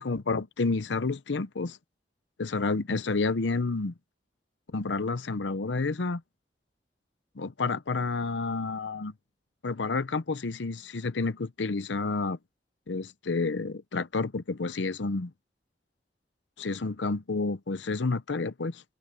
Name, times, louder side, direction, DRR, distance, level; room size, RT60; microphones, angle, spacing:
voice 1, 0.0-1.8 2.4-3.9 4.7-6.2 7.4-9.1 9.6-12.4 12.9-15.3 16.6-18.8, left 3 dB, 90° left, 0.8 m, -30 dB
head